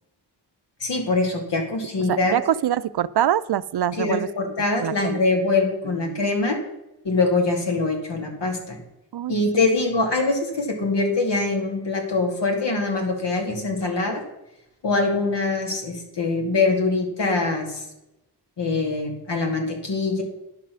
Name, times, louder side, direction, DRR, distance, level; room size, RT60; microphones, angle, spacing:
voice 1, 0.8-2.3 3.9-6.6 7.0-8.8 9.3-14.2 14.8-17.8 18.6-20.2, left 3 dB, 75° left, 2 dB, 2.6 m, -23 dB
voice 2, 2.1-4.3 4.8-5.2 6.1-6.2 9.1-9.3, right 11 dB, 65° right, 15 dB, 0.5 m, -24 dB
10.5 x 6.6 x 6.3 m, 0.92 s
wide cardioid pair, 80°, 43 cm